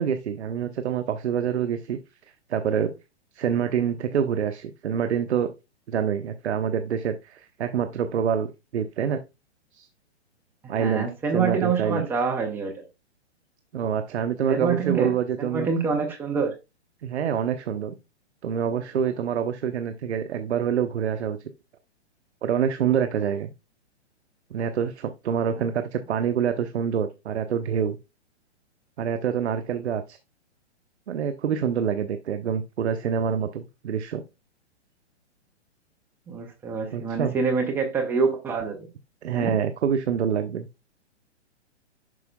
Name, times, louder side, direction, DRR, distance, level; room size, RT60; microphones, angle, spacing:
voice 1, 0.0-2.0 2.5-2.9 3.3-5.5 5.9-8.5 8.7-9.2 9.7-9.9 10.7-11.1 11.3-12.0 13.7-15.7 17.0-17.9 18.4-21.4 22.4-23.5 24.5-28.0 29.0-30.2 31.1-34.2 36.9-37.3 39.2-40.7, right 8 dB, 70° right, 0.9 m, -26 dB
voice 2, 10.6-12.8 14.5-16.6 36.3-38.9 39.3-39.5, right 5 dB, 5° right, 0.4 m, -26 dB
11.0 x 4.8 x 2.2 m
hypercardioid pair, 125°, 35 cm